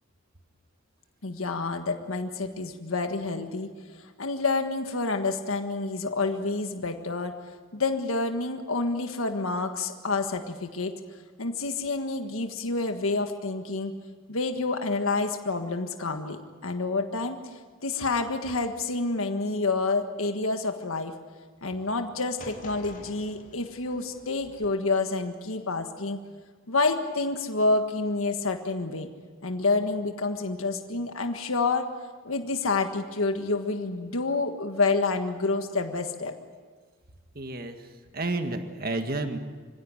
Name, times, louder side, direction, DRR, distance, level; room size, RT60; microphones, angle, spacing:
voice 1, 1.2-7.3 7.7-10.9 11.4-13.9 14.3-21.1 21.6-26.2 26.7-29.1 29.4-31.9 32.2-36.3, left 3 dB, 85° left, 6 dB, 1.6 m, -28 dB
sound 1, 22.4-24.7, left 2 dB, 40° left, 2.7 m, -47 dB
voice 2, 37.3-39.4, right 2 dB, 45° right, 6 dB, 1.7 m, -31 dB
25.0 x 16.5 x 9.7 m, 1.5 s
head